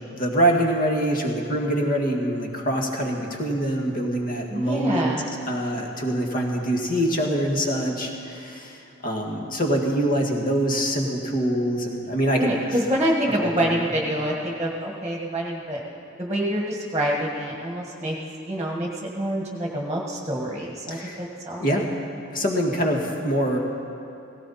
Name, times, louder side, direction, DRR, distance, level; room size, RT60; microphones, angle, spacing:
voice 1, 0.1-5.1 5.5-12.7 13.4-13.9 20.9-21.3 21.6-21.9 22.3-23.6, right 1 dB, 45° left, 1 dB, 1.8 m, -24 dB
voice 2, 4.5-5.3 12.4-15.8 16.2-18.2 18.5-18.9 19.1-21.6, right 1 dB, 15° right, -2 dB, 1.5 m, -26 dB
17.5 x 17.0 x 4.2 m, 2.8 s
head